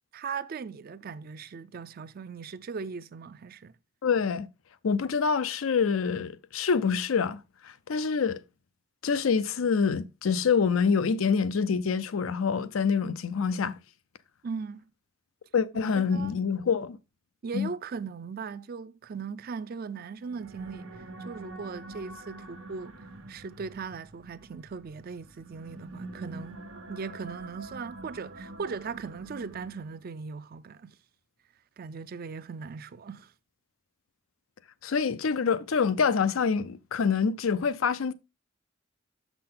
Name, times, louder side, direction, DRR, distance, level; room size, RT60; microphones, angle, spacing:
voice 1, 0.1-3.7 14.4-14.8 16.0-16.3 17.4-20.9 21.2-23.0 23.3-26.6 26.9-31.0 31.8-33.3, right 5 dB, 45° right, 0.4 m, -38 dB
voice 2, 4.0-4.5 4.8-8.4 9.0-13.8 15.5-17.0 17.5-17.7 34.8-38.1, left 6 dB, 90° left, 0.5 m, -26 dB
sound 1, 20.2-30.0, right 2 dB, 75° right, 1.1 m, -45 dB
6.7 x 5.9 x 3.8 m
head